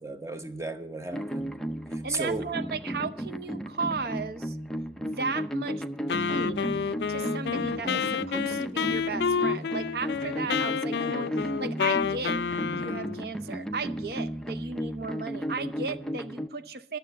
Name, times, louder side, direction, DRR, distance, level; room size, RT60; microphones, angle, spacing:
voice 1, 0.0-1.5 1.9-2.5, right 2 dB, 15° right, 8 dB, 0.8 m, -34 dB
sound 1, 1.1-16.5, equal, 5° left, 0.4 m, -34 dB
voice 2, 2.0-4.6 5.0-5.8 6.1-6.8 7.1-12.4 12.7-17.0, right 4 dB, 60° right, 12 dB, 0.7 m, -35 dB
Wind instrument woodwind instrument, 6.1-13.2, left 6 dB, 75° left, 0.4 m, -29 dB
12.5 x 6.9 x 8.1 m, 0.74 s
head